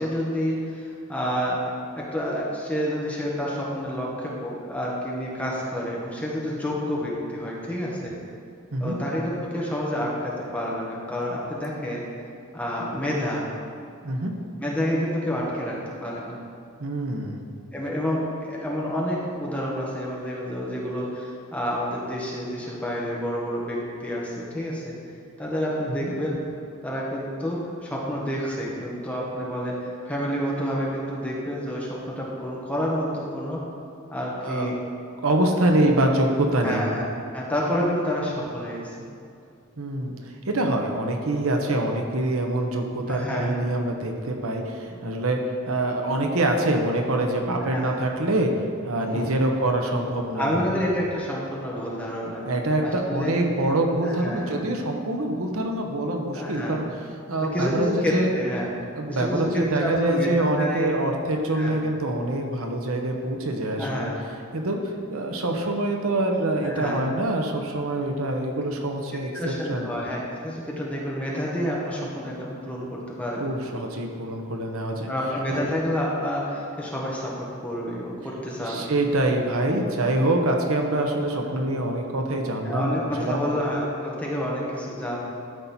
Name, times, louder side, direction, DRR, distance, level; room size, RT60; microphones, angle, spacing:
voice 1, 0.0-1.7 2.0-8.1 8.8-12.0 12.5-13.5 14.6-16.4 17.7-24.9 25.4-26.4 26.8-33.6 34.1-34.8 36.6-37.1 37.3-38.9 43.1-43.6 47.6-48.0 49.0-49.3 50.4-52.4 52.8-53.3 54.0-54.6 56.3-56.8 57.4-58.7 59.1-60.9 61.5-61.8 63.8-64.1 66.6-67.0 69.3-73.5 75.1-78.9 81.6-81.7 82.6-85.2, equal, 5° left, -4 dB, 1.4 m, -29 dB
voice 2, 16.8-17.4 26.0-26.1 34.4-34.7 35.2-36.8 39.8-40.1 40.5-45.4 45.7-48.5 48.8-50.6 52.4-56.9 57.3-58.3 58.9-64.1 64.5-64.8 65.1-69.9 73.4-75.1 75.5-75.7 78.6-82.9 83.2-83.5, right 1 dB, 80° right, 2 dB, 1.0 m, -25 dB
12.5 x 5.4 x 4.4 m, 2.4 s
head